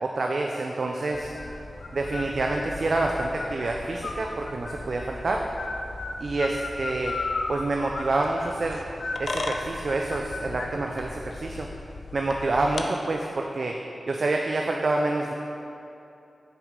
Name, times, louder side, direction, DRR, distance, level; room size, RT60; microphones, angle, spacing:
voice 1, 0.0-1.3 1.9-5.5 6.2-7.2 7.5-8.8 9.2-11.7 12.1-13.7 14.1-15.3, right 2 dB, 65° right, 1 dB, 0.5 m, -27 dB
sound 1, 1.1-12.8, left 3 dB, 70° left, 0.5 m, -35 dB
6.6 x 4.9 x 5.2 m, 2.7 s
cardioid pair, 50°, 0 cm